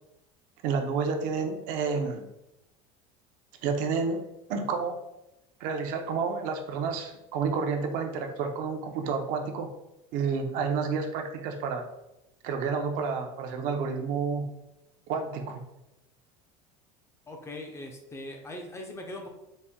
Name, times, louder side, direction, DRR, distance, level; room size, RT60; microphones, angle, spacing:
voice 1, 0.6-2.3 3.6-4.2 4.5-5.0 5.6-9.7 10.1-11.9 12.4-14.5 15.1-15.6, right 5 dB, 60° right, 4 dB, 0.6 m, -30 dB
voice 2, 17.3-19.3, left 1 dB, 15° left, 3 dB, 0.5 m, -40 dB
4.1 x 2.1 x 3.6 m, 0.91 s
cardioid pair, 140°, 16 cm